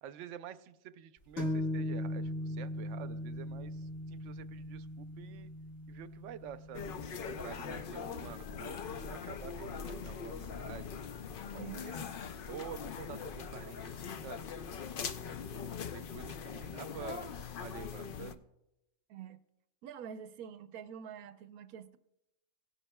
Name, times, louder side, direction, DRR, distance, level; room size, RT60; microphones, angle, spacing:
voice 1, 0.0-5.5 5.9-11.0 11.5-11.9 12.5-14.4 15.3-18.4, right 9 dB, 65° right, 12 dB, 0.8 m, -49 dB
sound 1, 1.4-8.9, left 1 dB, 45° left, 2.0 m, -39 dB
sound 2, 6.7-18.3, left 6 dB, 75° left, 0.4 m, -42 dB
voice 2, 11.5-12.2 19.1-19.4 19.8-22.0, right 8 dB, 80° right, 11 dB, 1.1 m, -47 dB
18.0 x 10.0 x 2.2 m, 0.89 s
omnidirectional pair, 1.5 m